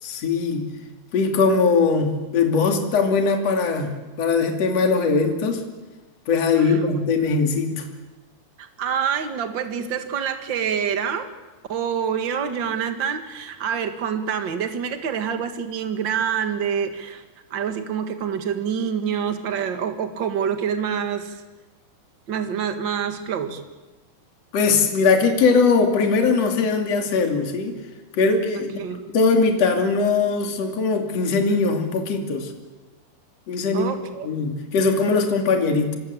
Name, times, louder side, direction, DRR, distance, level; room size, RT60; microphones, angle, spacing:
voice 1, 0.0-0.7 1.1-5.6 6.3-7.8 24.5-27.8 28.1-28.8 29.1-32.5 33.5-33.9 34.2-36.0, left 4 dB, 45° left, 4 dB, 3.4 m, -20 dB
voice 2, 8.6-11.3 11.7-17.2 17.5-21.4 22.3-23.6 28.5-29.0 33.7-34.3, right 7 dB, 55° right, 8 dB, 1.3 m, -26 dB
25.5 x 21.5 x 8.6 m, 1.2 s
omnidirectional pair, 4.7 m